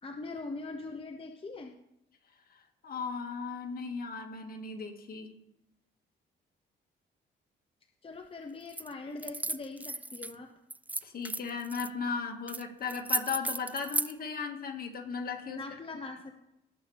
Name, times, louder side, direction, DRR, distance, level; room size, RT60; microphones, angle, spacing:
voice 1, 0.0-1.7 8.0-10.5 15.4-16.3, left 3 dB, 25° left, 4 dB, 1.0 m, -42 dB
voice 2, 2.5-5.3 11.0-15.6, left 5 dB, 50° left, 3 dB, 2.0 m, -36 dB
sound 1, 8.7-8.9 9.2-10.3 10.7-11.9 12.5-12.6 12.9-14.1, right 2 dB, 10° right, 0.4 m, -34 dB
18.0 x 6.9 x 3.5 m, 0.86 s
cardioid pair, 90°, 20 cm